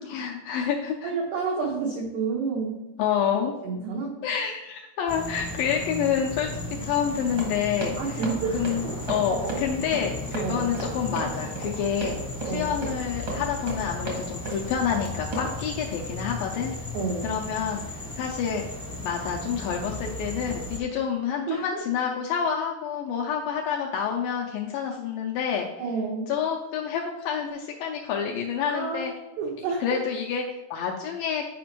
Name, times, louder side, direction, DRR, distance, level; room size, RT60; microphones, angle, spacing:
voice 1, 0.1-1.1 3.0-3.5 4.2-6.5 6.8-8.2 8.5-8.8 9.1-12.2 12.4-16.7 17.2-18.6 19.0-25.7 26.3-29.1 29.8-30.4 30.7-31.4, left 7 dB, 85° left, 0 dB, 2.1 m, -28 dB
voice 2, 1.0-2.8 3.6-4.1 8.0-8.6 8.8-9.0 9.3-9.6 10.4-10.7 12.5-12.8 16.9-17.3 21.5-21.8 25.8-26.3 28.7-29.1 29.4-30.0, right 4 dB, 85° right, -1 dB, 1.6 m, -29 dB
sound 1, 5.1-20.8, left 2 dB, 15° left, 0.6 m, -36 dB
Run, 7.0-15.5, right 3 dB, 65° right, 1.0 m, -35 dB
10.0 x 5.1 x 3.0 m, 1.0 s
omnidirectional pair, 4.6 m